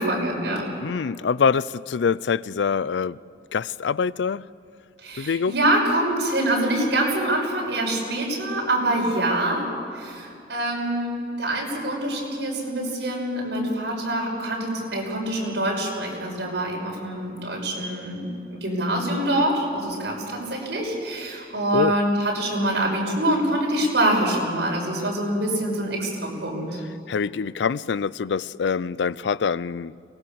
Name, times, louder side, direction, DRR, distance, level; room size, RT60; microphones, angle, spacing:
voice 1, 0.0-0.6 5.0-11.1 11.4-26.8, right 1 dB, 80° right, 6.2 m, -25 dB
voice 2, 0.8-3.2 3.5-4.4 5.2-5.5 21.7-22.0 27.1-29.9, left 6 dB, 90° left, 0.4 m, -24 dB
23.5 x 19.5 x 7.1 m
head